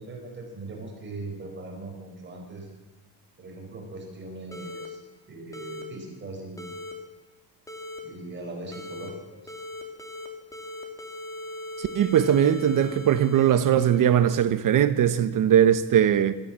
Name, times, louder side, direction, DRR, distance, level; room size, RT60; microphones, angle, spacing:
voice 1, 0.0-2.7 3.4-6.7 8.0-9.5 15.0-15.1, right 2 dB, 25° right, 4.7 m, -40 dB
sound 1, 4.5-4.9 5.5-5.8 6.6-6.9 7.7-8.0 8.7-9.1 9.5-10.3 10.5-14.3, left 1 dB, 5° left, 2.6 m, -39 dB
voice 2, 11.9-16.3, right 9 dB, 45° right, 1.1 m, -20 dB
25.5 x 14.5 x 7.5 m
cardioid pair, 175°, 43 cm